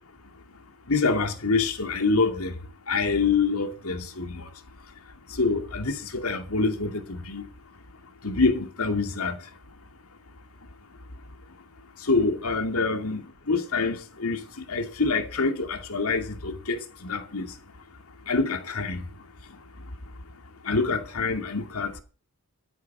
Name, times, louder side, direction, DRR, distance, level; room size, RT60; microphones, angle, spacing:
voice 1, 0.9-2.5 2.9-4.4 5.4-7.4 8.2-9.4 12.1-13.2 13.5-14.4 14.7-17.5 18.3-19.0 20.7-22.0, left 4 dB, 75° left, 2.4 m, -26 dB
13.0 x 9.4 x 5.5 m
head